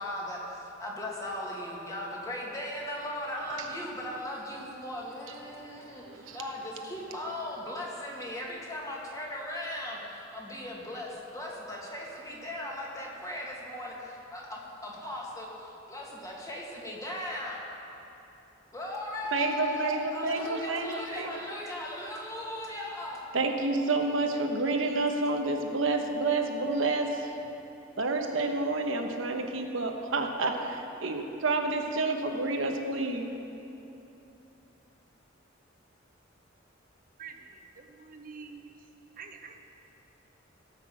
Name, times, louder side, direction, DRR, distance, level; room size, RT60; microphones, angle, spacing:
voice 1, 0.0-17.6 18.7-23.3, left 1 dB, 15° left, -3 dB, 2.0 m, -38 dB
voice 2, 6.1-6.4 19.3-21.3 23.3-27.3 28.0-33.3, right 3 dB, 85° right, 4 dB, 1.2 m, -29 dB
voice 3, 37.2-38.7 39.2-39.6, right 5 dB, 45° right, 4 dB, 1.0 m, -46 dB
17.0 x 6.1 x 7.6 m, 2.9 s
head